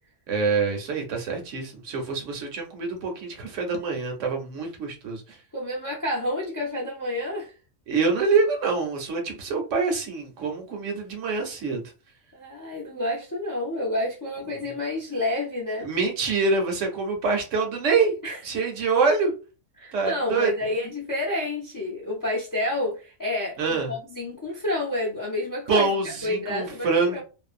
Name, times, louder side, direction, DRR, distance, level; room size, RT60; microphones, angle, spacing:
voice 1, 0.3-5.4 7.9-11.8 15.8-18.1 18.4-19.3 19.9-20.5 23.6-23.9 25.7-27.2, right 4 dB, 75° right, 1.1 m, -25 dB
voice 2, 5.5-7.5 12.3-15.9 18.2-18.4 19.8-25.9 26.2-27.2, left 1 dB, 30° left, 0.3 m, -29 dB
2.6 x 2.0 x 2.4 m
omnidirectional pair, 1.3 m